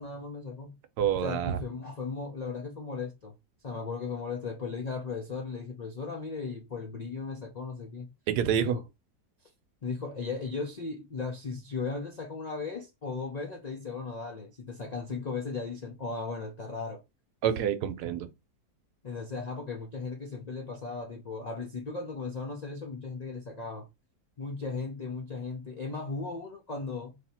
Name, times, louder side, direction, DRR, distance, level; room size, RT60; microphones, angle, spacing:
voice 1, 0.0-0.8 1.2-3.3 3.6-8.1 8.6-8.8 9.8-17.0 19.0-23.9 24.4-27.2, left 4 dB, 65° left, 0.4 m, -36 dB
voice 2, 1.0-1.6 8.3-8.8 17.4-18.3, right 9 dB, 80° right, 1.2 m, -27 dB
3.3 x 2.8 x 4.2 m
omnidirectional pair, 1.7 m